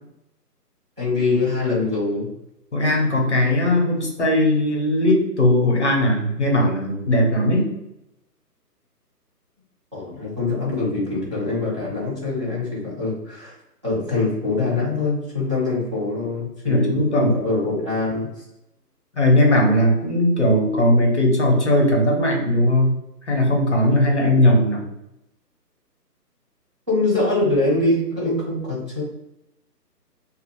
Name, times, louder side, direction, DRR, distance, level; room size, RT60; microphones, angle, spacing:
voice 1, 1.0-2.3 9.9-13.5 13.8-18.3 26.9-29.0, left 2 dB, 20° right, -11 dB, 0.7 m, -23 dB
voice 2, 2.7-7.7 16.6-17.4 19.1-22.9 23.3-24.8, left 1 dB, 45° left, 0 dB, 0.8 m, -18 dB
2.8 x 2.4 x 3.0 m, 0.87 s
figure-of-eight pair, 145°, 49 cm